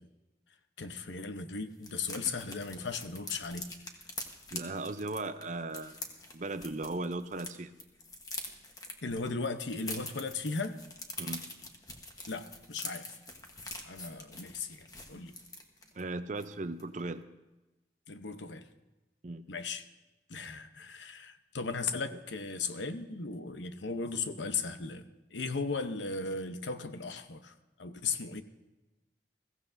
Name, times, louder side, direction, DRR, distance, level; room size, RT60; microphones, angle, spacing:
voice 1, 0.8-3.7 9.0-10.8 12.3-13.1 13.8-15.3 18.1-18.7 19.5-19.8 20.3-27.5 27.8-28.4, left 4 dB, 90° left, 9 dB, 0.9 m, -37 dB
sound 1, 0.8-0.9 1.2-1.3 1.5-7.5 7.8-16.0 16.4-16.5 16.8-17.1, left 2 dB, 20° left, 1.2 m, -44 dB
voice 2, 4.5-6.0 6.3-7.7 11.2-11.5 15.9-17.2 19.2-19.5, right 2 dB, 45° right, 11 dB, 0.6 m, -37 dB
21.5 x 15.5 x 2.7 m, 1.1 s
head